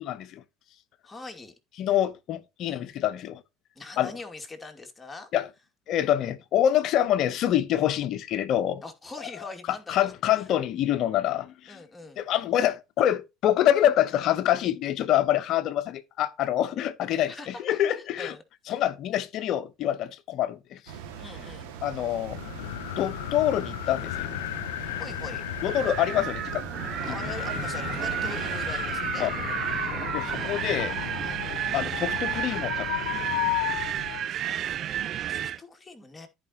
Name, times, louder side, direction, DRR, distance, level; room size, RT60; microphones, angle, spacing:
voice 1, 0.0-0.4 1.8-3.4 4.0-4.1 5.3-5.5 5.9-8.8 9.9-11.8 12.2-17.3 17.6-18.3 18.7-20.8 21.8-22.4 23.0-24.4 25.6-26.6 29.2-29.3 30.1-31.0 31.7-33.0, left 11 dB, 55° left, 0.9 m, -26 dB
voice 2, 1.0-1.5 2.6-2.9 3.7-5.3 8.8-10.5 11.7-12.2 17.3-18.4 18.7-18.8 21.2-21.8 25.0-25.4 27.0-29.6 31.2-31.5 34.4-36.3, left 3 dB, 15° left, 2.4 m, -43 dB
sound 1, 20.9-28.7, right 7 dB, 70° right, 2.1 m, -41 dB
sound 2, 22.1-34.3, left 18 dB, 75° left, 0.3 m, -34 dB
Wind, 25.7-35.6, right 10 dB, 50° right, 0.5 m, -32 dB
14.0 x 5.2 x 3.0 m
hypercardioid pair, 70°, 0 cm